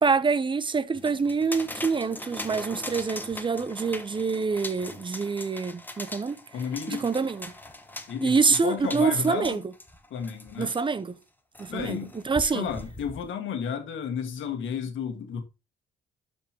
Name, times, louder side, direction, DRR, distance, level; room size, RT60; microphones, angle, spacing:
voice 1, 0.0-6.4 6.9-7.5 8.2-9.6 10.6-11.2 11.6-12.7, right 4 dB, 25° right, 0.7 m, -26 dB
sound 1, 0.9-10.9 11.5-13.3, left 1 dB, 10° left, 1.1 m, -41 dB
voice 2, 6.5-7.1 8.1-9.6 10.1-10.7 11.7-12.1 12.4-15.4, left 7 dB, 75° left, 1.7 m, -32 dB
12.0 x 5.3 x 2.9 m
cardioid pair, 90°, 20 cm